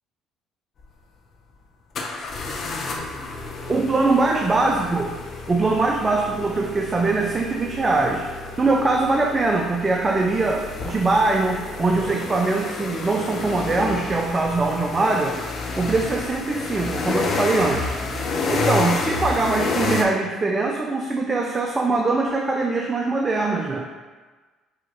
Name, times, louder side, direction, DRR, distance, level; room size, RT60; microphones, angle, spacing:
sound 1, 0.8-0.9 1.9-20.0, left 3 dB, 50° left, 0.6 m, -30 dB
voice 1, 3.7-5.1 5.5-8.3 8.6-15.4 15.8-18.0 18.5-23.9, right 3 dB, 25° right, 1 dB, 0.4 m, -22 dB
4.7 x 2.9 x 3.0 m, 1.3 s
hypercardioid pair, 65°, 0 cm